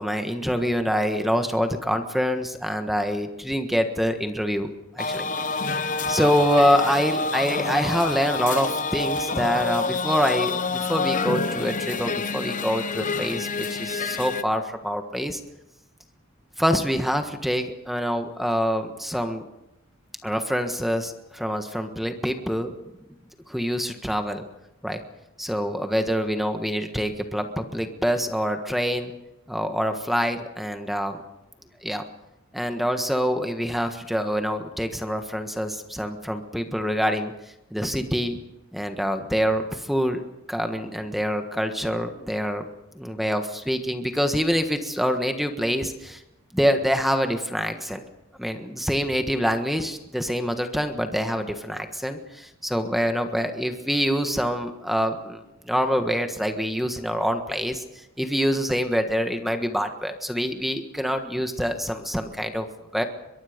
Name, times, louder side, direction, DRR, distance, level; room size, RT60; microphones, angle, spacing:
voice 1, 0.0-5.3 6.1-15.4 16.6-19.5 20.2-22.8 23.5-24.4 24.8-25.0 25.4-29.1 29.5-31.2 31.8-32.0 32.5-37.3 37.7-38.4 38.7-40.2 40.5-42.7 42.9-46.2 46.5-48.0 48.4-62.7 62.9-63.0, equal, ahead, 6 dB, 1.4 m, -25 dB
sound 1, 5.0-14.4, left 3 dB, 40° left, 0.9 m, -27 dB
23.5 x 22.0 x 5.2 m, 0.91 s
head